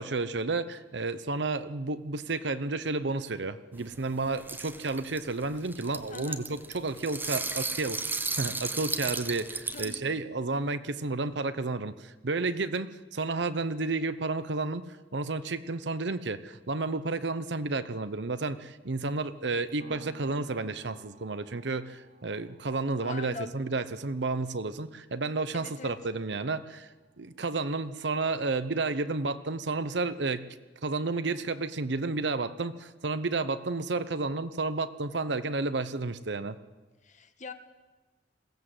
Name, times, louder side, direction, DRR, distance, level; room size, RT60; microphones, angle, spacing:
voice 1, 0.0-14.9 15.1-26.9 27.2-30.5 30.8-36.6, right 3 dB, 70° right, 13 dB, 0.9 m, -31 dB
sound 1, 3.8-10.0, right 3 dB, 10° right, 0.9 m, -35 dB
voice 2, 6.1-6.4 9.7-10.0 23.0-23.5 25.5-25.9 37.0-37.5, left 4 dB, 45° left, 8 dB, 1.4 m, -42 dB
sound 2, 19.8-27.9 28.4-28.5, right 1 dB, 50° right, 2.4 m, -57 dB
21.0 x 16.0 x 7.9 m, 1.2 s
head